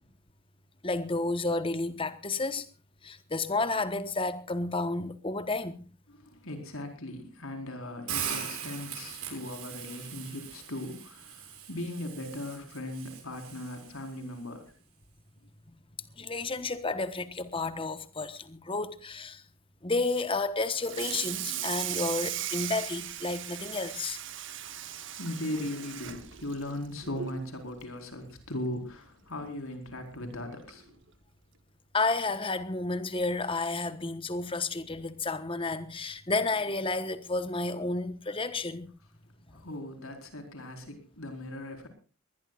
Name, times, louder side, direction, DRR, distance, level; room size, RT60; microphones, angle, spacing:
voice 1, 0.8-2.7 3.0-5.9 16.2-19.4 19.8-24.2 31.9-38.9 39.5-39.6, left 3 dB, 25° left, 1.1 m, -31 dB
voice 2, 6.1-14.7 25.2-31.0 39.5-41.9, left 1 dB, 70° left, 4.6 m, -38 dB
Hiss, 8.1-14.1, right 8 dB, 80° right, 7.0 m, -40 dB
Water tap faucet / Sink (filling or washing), 20.7-27.4 27.8-28.0 28.4-28.5 28.9-29.0 30.1-30.2 30.7-30.9, right 11 dB, 55° right, 1.6 m, -37 dB
20.5 x 20.0 x 2.4 m
head